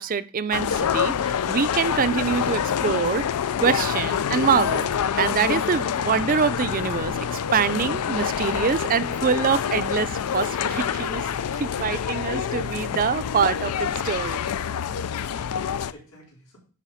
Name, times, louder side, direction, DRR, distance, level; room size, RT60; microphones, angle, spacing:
voice 1, 0.0-3.3 3.6-11.2 11.5-14.4, right 6 dB, 40° right, 0.4 m, -25 dB
sound 1, 0.5-15.9, left 8 dB, 90° left, 0.4 m, -26 dB
voice 2, 14.8-16.6, equal, 75° left, 4.2 m, -53 dB
10.0 x 3.4 x 5.7 m
head